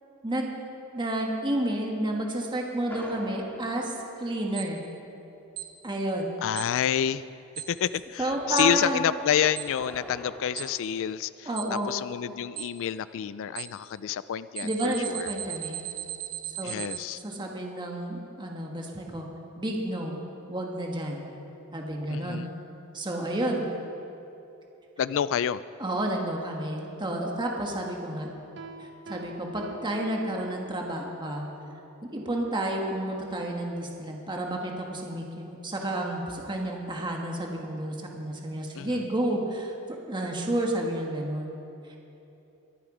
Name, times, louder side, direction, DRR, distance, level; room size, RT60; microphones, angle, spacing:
voice 1, 0.9-4.8 5.8-6.3 8.2-9.0 11.4-12.0 14.6-15.8 16.6-16.8 17.2-19.3 19.5-20.2 20.5-21.2 21.7-22.5 22.9-23.6 25.8-28.3 28.8-31.4 32.1-41.5, right 1 dB, 20° right, 0 dB, 1.5 m, -31 dB
sound 1, 2.9-5.0 7.9-10.7, left 1 dB, 10° left, 1.8 m, -45 dB
Alarm, 4.6-4.7 5.6-5.7 6.6-6.7 7.6-7.7 8.6-8.7 9.6-9.7 10.6-10.7 11.6-11.7 12.6-12.7 13.6-13.7 14.6-17.0, right 15 dB, 85° right, 1.8 m, -35 dB
voice 2, 6.4-7.2 7.7-15.3 16.6-17.2 22.1-22.5 25.0-25.6 38.8-39.0, left 9 dB, 60° left, 16 dB, 0.3 m, -28 dB
Piano, 28.6-30.9, right 3 dB, 50° right, 0.7 m, -45 dB
22.5 x 11.0 x 5.0 m, 2.9 s
head